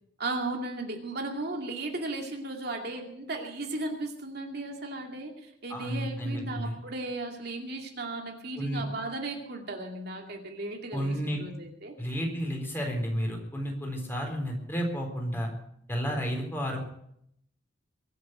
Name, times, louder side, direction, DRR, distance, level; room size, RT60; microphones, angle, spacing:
voice 1, 0.2-12.2, right 2 dB, 55° right, 2 dB, 2.5 m, -36 dB
voice 2, 5.7-6.8 8.6-8.8 10.9-11.4 12.0-15.5 15.9-16.9, equal, 10° left, 1 dB, 4.1 m, -31 dB
23.0 x 7.8 x 7.9 m, 0.73 s
head